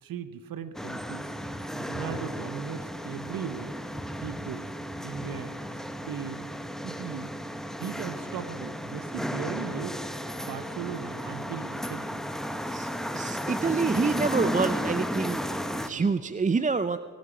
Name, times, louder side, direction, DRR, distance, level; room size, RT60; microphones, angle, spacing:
voice 1, 0.0-1.3 1.7-3.8 4.2-4.7 5.0-6.5 6.8-7.3 7.8-10.0 10.4-12.3 15.9-16.1, right 8 dB, 85° right, 12 dB, 0.8 m, -38 dB
sound 1, 0.7-15.9, equal, ahead, 1.0 m, -34 dB
voice 2, 12.7-17.0, right 4 dB, 25° right, 12 dB, 0.5 m, -27 dB
22.5 x 11.5 x 4.9 m, 2.2 s
cardioid pair, 55°, 33 cm